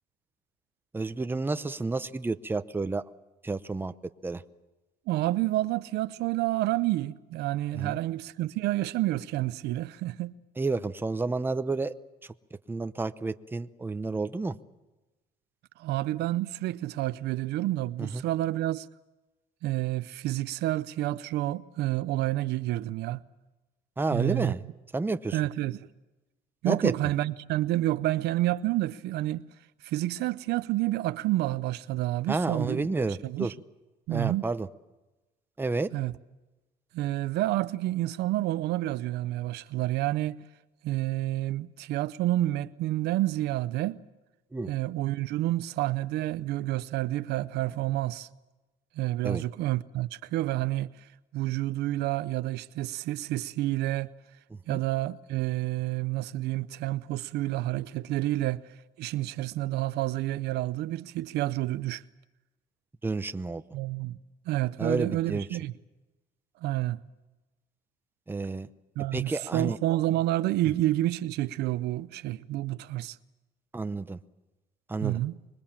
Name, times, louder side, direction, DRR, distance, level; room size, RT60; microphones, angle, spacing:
voice 1, 0.9-3.0 3.4-4.4 7.7-8.0 10.6-11.9 12.2-12.3 12.7-14.6 18.0-18.2 24.0-24.6 24.9-25.4 26.6-26.9 32.3-33.5 34.1-34.7 35.6-35.9 44.5-44.7 49.2-49.4 54.5-54.8 63.0-63.6 64.8-65.5 68.3-68.7 69.1-69.8 73.7-74.2 74.9-75.2, right 3 dB, 10° right, 0.8 m, -30 dB
voice 2, 5.1-10.3 15.8-18.9 19.6-23.2 24.1-24.6 25.3-25.8 26.6-29.5 29.8-32.9 33.2-33.5 34.1-34.4 35.9-36.1 36.9-40.4 40.8-44.0 44.7-48.3 49.0-50.9 51.3-54.1 54.7-58.6 59.0-62.0 63.7-64.2 64.5-65.7 66.6-67.0 69.0-73.2 75.0-75.4, right 16 dB, 80° right, 0.7 m, -29 dB
25.5 x 21.5 x 7.4 m
cardioid pair, 110°, 17 cm